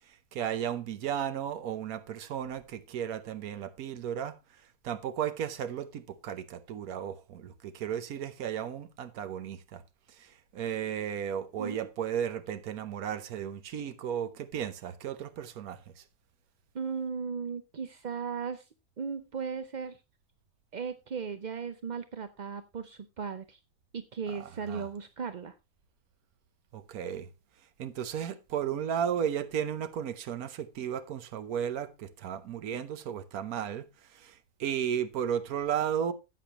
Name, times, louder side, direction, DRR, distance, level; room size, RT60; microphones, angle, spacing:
voice 1, 0.1-4.4 4.8-9.8 10.1-16.0 24.3-24.9 26.7-27.3 27.8-36.1, right 9 dB, 80° right, 1.3 m, -34 dB
voice 2, 11.6-11.9 16.7-18.7 19.0-20.0 20.7-23.6 23.9-25.5, right 6 dB, 50° right, 0.5 m, -36 dB
13.5 x 8.5 x 2.9 m
omnidirectional pair, 1.5 m